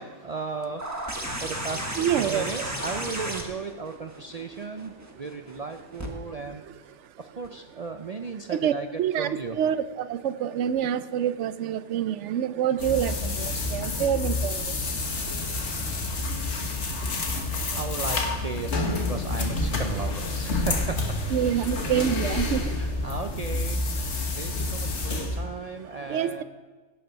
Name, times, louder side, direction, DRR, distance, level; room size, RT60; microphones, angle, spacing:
voice 1, 0.0-8.9 9.2-9.6 15.2-15.7 17.3-21.2 22.8-26.4, right 4 dB, 45° right, 6 dB, 0.5 m, -36 dB
sound 1, 0.8-6.1 7.4-7.5, right 1 dB, 15° right, 1.4 m, -34 dB
voice 2, 2.0-2.7 8.5-8.7 9.0-9.3 9.6-15.0 21.3-22.7 26.1-26.4, right 9 dB, 80° right, 14 dB, 0.9 m, -27 dB
sound 2, 12.8-25.4, left 2 dB, 70° left, 1.7 m, -29 dB
16.5 x 6.7 x 5.6 m, 1.4 s
omnidirectional pair, 1.2 m